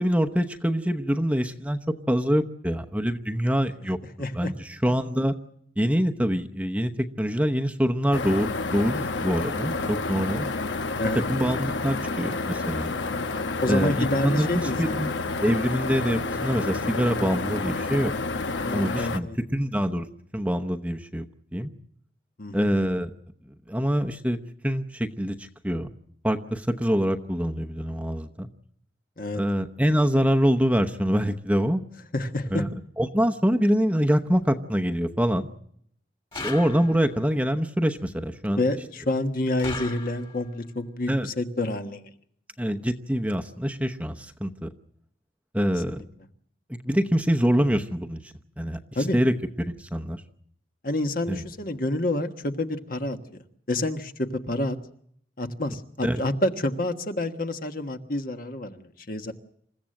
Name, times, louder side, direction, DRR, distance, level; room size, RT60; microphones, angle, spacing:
voice 1, 0.0-1.8 2.1-4.0 4.3-5.3 5.8-10.5 11.1-12.9 13.7-15.1 15.4-18.1 18.7-19.3 19.5-20.1 20.3-21.2 21.5-21.7 22.5-23.1 23.7-24.4 24.6-25.9 26.2-28.5 29.3-31.8 32.5-32.7 33.0-35.5 36.4-38.6 41.1-41.3 42.6-44.7 45.5-46.0 46.7-48.2 48.6-48.8 49.1-49.3 49.7-50.2 51.3-51.4 56.0-56.2, equal, 5° right, 5 dB, 0.9 m, -25 dB
voice 2, 4.2-4.5 11.0-11.2 13.6-14.9 18.6-19.4 22.4-22.7 29.2-29.4 32.1-32.6 38.6-42.1 45.9-46.0 48.9-49.2 50.8-53.2 53.7-54.8 55.4-59.3, left 1 dB, 50° left, 6 dB, 1.4 m, -28 dB
sound 1, 8.1-19.2, left 3 dB, 80° left, 1.1 m, -29 dB
sound 2, 36.3-37.2 39.6-40.5, left 3 dB, 30° left, 2.6 m, -37 dB
28.0 x 15.5 x 7.7 m, 0.67 s
head